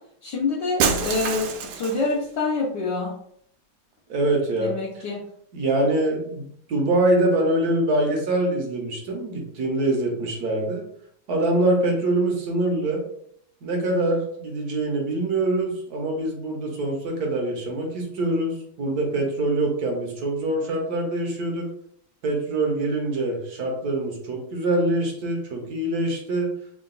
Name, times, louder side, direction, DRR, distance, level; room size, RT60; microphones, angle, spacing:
voice 1, 0.2-3.1 4.6-5.2, left 3 dB, 65° left, -4 dB, 1.2 m, -26 dB
Shatter, 0.8-2.1, right 6 dB, 85° right, 1.5 m, -25 dB
voice 2, 4.1-4.7 5.5-10.8 11.3-13.0 13.6-21.7 22.2-26.5, right 1 dB, 55° right, 0 dB, 1.2 m, -24 dB
3.8 x 2.4 x 3.7 m, 0.68 s
omnidirectional pair, 2.3 m